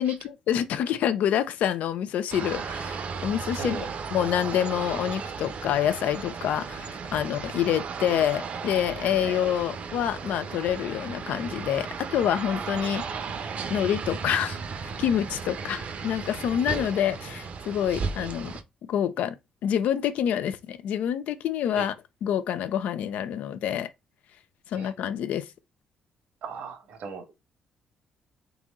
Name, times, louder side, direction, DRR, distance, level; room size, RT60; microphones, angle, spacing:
voice 1, 0.0-13.0 13.7-14.6 15.0-18.5 18.8-19.4 19.6-21.9 22.2-23.9 24.7-25.5, left 10 dB, 80° left, 0.6 m, -27 dB
sound 1, 2.3-18.6, right 5 dB, 60° right, 0.8 m, -35 dB
voice 2, 3.6-3.9 9.3-9.4 15.6-15.7 18.2-18.3 21.8-21.9 24.7-24.9 26.4-27.3, right 5 dB, 75° right, 1.3 m, -37 dB
4.0 x 3.0 x 3.7 m
cardioid pair, 75°, 3 cm